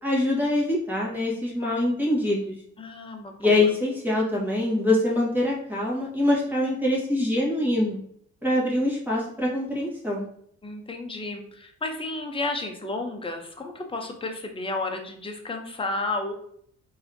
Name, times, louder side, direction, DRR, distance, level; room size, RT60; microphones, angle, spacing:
voice 1, 0.0-2.5 3.4-8.0 8.4-10.3, left 1 dB, 5° right, -5 dB, 1.4 m, -24 dB
voice 2, 2.8-3.7 10.6-16.3, left 2 dB, 20° left, 3 dB, 0.7 m, -32 dB
4.0 x 2.7 x 2.7 m, 0.65 s
cardioid pair, 90°, 30 cm